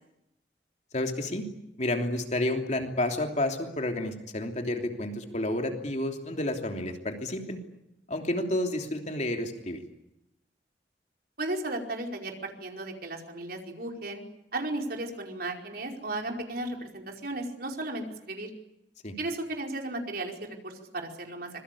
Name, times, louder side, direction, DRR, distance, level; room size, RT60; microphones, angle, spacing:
voice 1, 0.9-1.4 1.8-7.6 8.1-9.8 19.0-19.2, left 1 dB, 40° left, 4 dB, 3.1 m, -30 dB
voice 2, 11.4-14.2 14.5-18.5 19.2-21.5, right 2 dB, 55° right, 2 dB, 5.0 m, -35 dB
26.0 x 22.0 x 8.5 m, 0.82 s
head